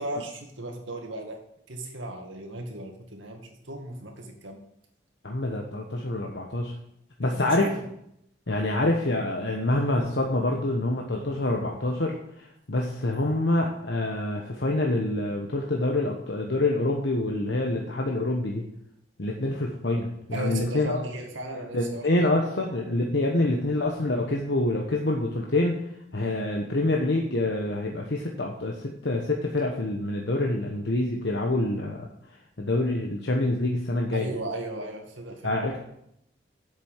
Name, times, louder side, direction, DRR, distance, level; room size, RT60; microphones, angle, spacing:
voice 1, 0.0-1.4 1.7-4.6 7.3-7.7 8.5-8.7 20.3-22.6 34.1-35.8, right 1 dB, 90° right, 3 dB, 2.1 m, -36 dB
voice 2, 5.2-6.7 7.2-7.7 8.5-18.6 19.2-21.0 21.7-25.7 26.1-32.1 32.6-34.3 35.4-35.8, left 2 dB, 65° left, 0 dB, 1.2 m, -26 dB
8.4 x 7.6 x 7.3 m, 0.77 s
head